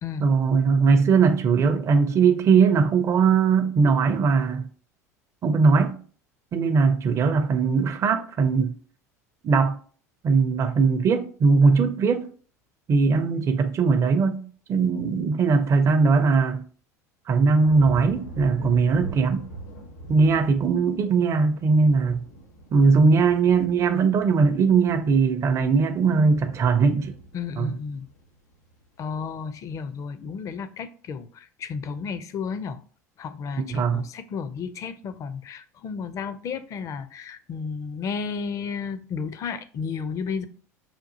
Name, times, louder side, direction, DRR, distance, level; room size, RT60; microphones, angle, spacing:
voice 1, 0.2-4.6 5.4-6.0 6.5-8.7 9.4-9.8 10.2-12.3 12.9-14.4 14.7-16.6 17.3-19.5 20.1-22.2 22.7-27.1 27.6-27.7 33.6-34.1, right 5 dB, 35° right, 0.5 m, -20 dB
sound 1, 17.6-28.9 29.3-29.7, right 1 dB, 90° left, 1.1 m, -42 dB
voice 2, 27.3-28.1 29.0-32.8 33.2-40.5, left 5 dB, 40° left, 0.4 m, -33 dB
5.8 x 2.4 x 2.6 m
hypercardioid pair, 75°, 9 cm